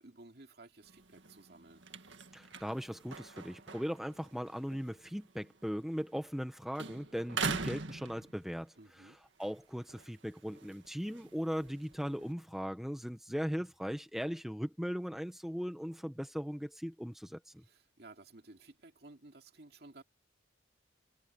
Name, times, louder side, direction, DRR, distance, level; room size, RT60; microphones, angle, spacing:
voice 1, 0.0-1.9 8.8-9.2 17.6-20.0, right 2 dB, 55° right, 2.5 m, -55 dB
sound 1, 0.8-6.5 6.7-8.8 9.2-12.3, right 4 dB, 75° right, 1.9 m, -43 dB
voice 2, 2.3-17.6, equal, ahead, 0.9 m, -38 dB
head